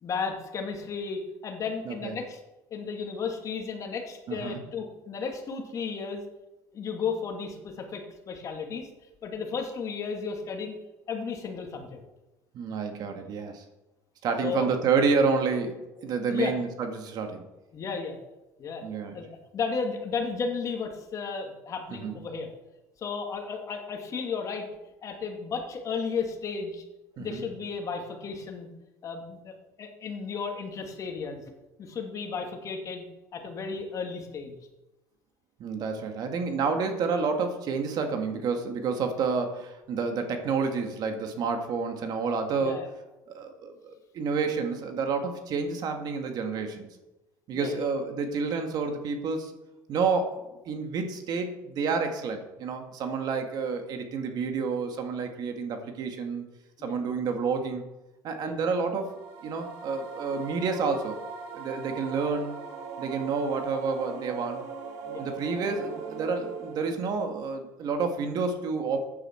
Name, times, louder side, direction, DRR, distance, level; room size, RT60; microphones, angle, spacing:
voice 1, 0.0-2.4 2.7-6.2 6.7-8.9 9.2-10.7 11.1-12.0 14.4-14.7 16.3-16.5 17.7-18.2 18.6-18.8 19.1-22.5 23.0-24.7 25.0-26.8 27.2-28.7 29.0-31.4 31.8-33.1 33.3-34.6 42.6-42.9 47.5-47.9 56.8-57.0 58.4-58.5 65.1-65.2, left 5 dB, 40° left, 3 dB, 2.2 m, -34 dB
voice 2, 4.3-4.6 12.5-13.6 14.2-17.5 18.8-19.2 21.9-22.2 27.2-27.4 35.6-42.8 43.3-46.9 47.5-49.5 49.9-56.4 56.8-57.8 58.2-59.1 59.4-61.2 61.5-62.5 63.0-64.6 65.2-69.0, right 5 dB, 50° right, 5 dB, 1.9 m, -29 dB
sound 1, 59.0-67.1, right 5 dB, 85° right, 2.2 m, -40 dB
14.5 x 9.6 x 4.6 m, 1.0 s
cardioid pair, 120°, 8 cm